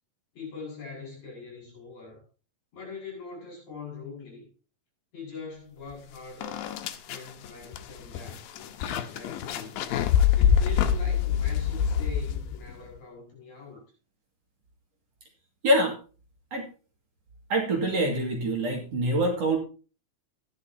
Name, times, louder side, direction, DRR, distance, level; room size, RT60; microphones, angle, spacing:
voice 1, 0.3-2.2 2.7-4.5 5.1-6.7 7.1-9.8 10.3-13.8, left 4 dB, 55° left, 6.4 m, -42 dB
sound 1, 5.9-6.0 6.4-12.8, left 8 dB, 85° left, 2.6 m, -25 dB
voice 2, 15.6-16.0 16.5-16.6 17.5-19.6, right 1 dB, 50° right, 3.2 m, -25 dB
14.0 x 11.0 x 2.8 m
omnidirectional pair, 3.9 m